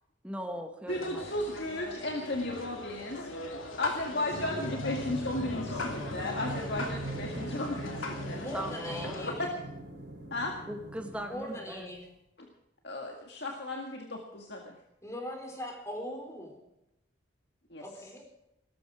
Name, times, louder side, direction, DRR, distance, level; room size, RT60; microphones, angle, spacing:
voice 1, 0.2-1.3 8.5-9.2 10.7-11.9, equal, 5° right, 4 dB, 1.5 m, -39 dB
sound 1, 0.9-9.3, left 2 dB, 90° left, 3.0 m, -40 dB
voice 2, 0.9-3.3 3.7-8.5 9.2-9.5 10.3-10.6 12.4-12.5 12.8-14.8 17.7-17.8, left 1 dB, 55° left, 1 dB, 2.0 m, -35 dB
sound 2, 4.3-11.8, right 1 dB, 55° right, 3.9 m, -40 dB
voice 3, 8.4-9.3 11.3-12.0 15.0-16.6 17.8-18.2, equal, 15° left, 2 dB, 4.3 m, -40 dB
18.5 x 14.0 x 5.0 m, 0.88 s
head